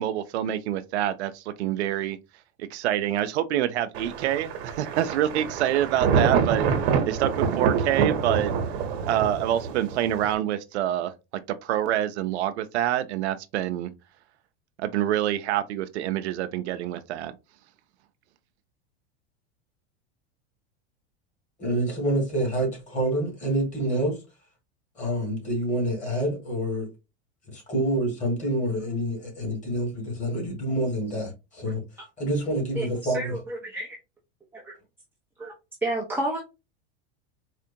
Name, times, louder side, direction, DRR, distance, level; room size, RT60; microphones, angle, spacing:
voice 1, 0.0-2.2 2.7-6.7 7.1-8.5 9.1-11.1 11.6-13.9 14.8-17.3, right 12 dB, 85° right, 0.5 m, -26 dB
Thunder, 3.9-10.3, right 6 dB, 70° right, 1.0 m, -26 dB
voice 2, 21.6-24.2 25.0-26.9 27.5-31.8 32.2-33.4, right 1 dB, 20° left, 2.1 m, -27 dB
voice 3, 32.8-34.0 34.5-34.8 35.4-35.5 35.8-36.4, right 1 dB, 5° right, 0.6 m, -31 dB
4.3 x 2.4 x 2.7 m
supercardioid pair, 125°, 32 cm